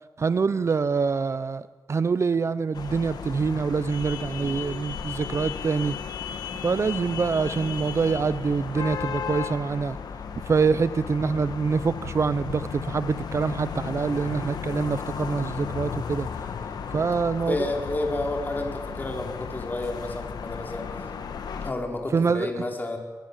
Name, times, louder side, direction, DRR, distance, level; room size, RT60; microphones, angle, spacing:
voice 1, 0.2-6.0 6.6-10.0 10.5-16.3 16.9-17.7 22.1-22.5, right 5 dB, 45° right, 15 dB, 0.7 m, -25 dB
sound 1, 2.7-21.7, left 6 dB, 80° left, 1.7 m, -35 dB
voice 2, 4.4-4.7 14.0-14.3 17.0-20.8 21.6-23.0, left 2 dB, 25° left, 2 dB, 4.6 m, -31 dB
22.0 x 22.0 x 7.4 m, 1.4 s
wide cardioid pair, 100°, 7 cm